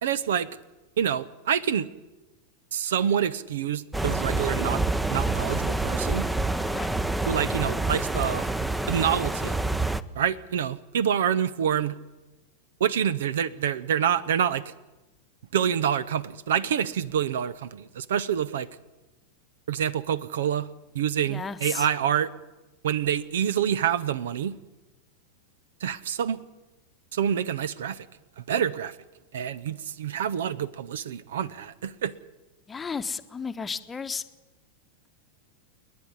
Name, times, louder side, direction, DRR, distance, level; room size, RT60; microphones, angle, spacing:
voice 1, 0.0-0.5 1.0-1.9 2.7-6.3 7.3-8.5 8.9-9.6 10.1-12.0 12.8-14.7 15.5-18.7 19.7-20.7 20.9-22.3 22.8-24.5 25.8-26.4 27.1-28.1 28.4-29.0 29.3-32.1, right 9 dB, 60° right, 18 dB, 0.8 m, -27 dB
sound 1, 3.9-10.0, right 2 dB, 5° right, 0.8 m, -27 dB
voice 2, 21.3-21.9 32.7-34.2, left 5 dB, 15° left, 10 dB, 1.1 m, -33 dB
29.0 x 10.5 x 9.7 m, 1.1 s
figure-of-eight pair, 90°, 0 cm